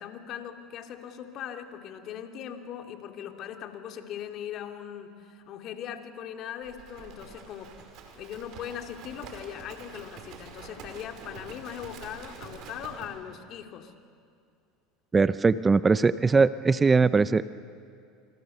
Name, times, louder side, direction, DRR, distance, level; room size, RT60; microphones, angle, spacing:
voice 1, 0.0-7.7 8.1-13.9, left 9 dB, 50° left, 5 dB, 2.6 m, -40 dB
Livestock farm animals working animals, 6.6-13.1, right 5 dB, 60° right, 5.3 m, -46 dB
voice 2, 15.1-17.4, right 4 dB, 20° right, 15 dB, 0.7 m, -21 dB
28.0 x 26.0 x 6.9 m, 2.3 s
hypercardioid pair, 90°, 0 cm